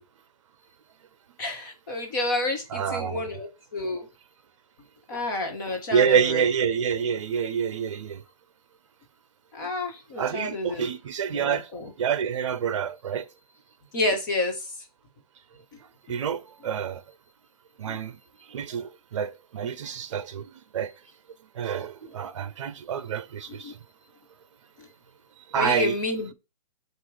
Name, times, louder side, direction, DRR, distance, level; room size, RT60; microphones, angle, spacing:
voice 1, 1.4-4.1 5.1-6.4 9.5-10.9 11.3-11.9 13.9-14.6 17.9-18.0 23.5-23.7 25.6-26.3, left 2 dB, 30° left, 1.4 m, -29 dB
voice 2, 2.7-3.2 5.1-5.2 5.9-8.2 10.2-11.7 12.0-13.2 16.1-17.0 17.8-18.2 18.5-20.9 21.5-23.8 25.5-26.0, right 7 dB, 50° right, 0.7 m, -27 dB
7.4 x 2.6 x 4.9 m
hypercardioid pair, 170°, 20 cm